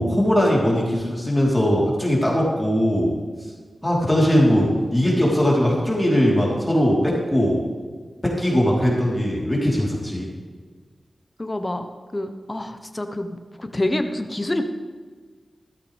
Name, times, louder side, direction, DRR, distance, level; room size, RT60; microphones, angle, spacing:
voice 1, 0.0-3.1 3.8-7.6 8.2-10.3, equal, 15° left, -5 dB, 3.7 m, -20 dB
voice 2, 11.4-14.6, left 1 dB, 30° left, 6 dB, 1.0 m, -27 dB
13.5 x 13.5 x 3.4 m, 1.5 s
cardioid pair, 50°, 0 cm